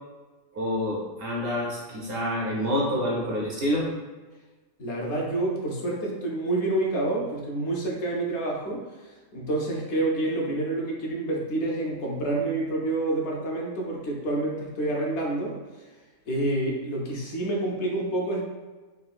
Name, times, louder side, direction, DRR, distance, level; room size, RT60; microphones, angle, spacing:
voice 1, 0.5-3.9, equal, 60° right, -3 dB, 0.7 m, -27 dB
voice 2, 4.8-15.6 16.3-18.4, right 2 dB, 65° left, -2 dB, 0.8 m, -28 dB
3.5 x 2.3 x 2.3 m, 1.3 s
omnidirectional pair, 1.3 m